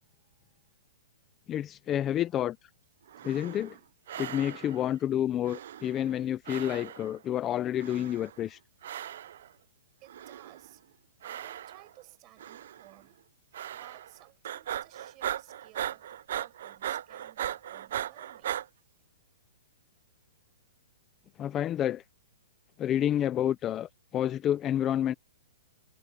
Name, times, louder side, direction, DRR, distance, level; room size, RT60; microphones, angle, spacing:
voice 1, 0.0-0.6 10.0-10.8 11.2-13.2 13.7-18.6, right 19 dB, 20° right, 6.8 m, -57 dB
voice 2, 1.5-2.7 3.2-3.8 4.2-8.6 21.4-22.0 22.8-25.1, left 11 dB, 15° left, 0.5 m, -29 dB
sound 1, 3.1-3.8 4.1-4.9 5.4-6.2 6.5-7.2 7.8-8.4 8.8-9.5 10.1-10.7 11.2-12.0 12.4-12.9 13.5-14.2 14.4-18.7, right 11 dB, 55° right, 0.6 m, -38 dB
hypercardioid pair, 170°, 0 cm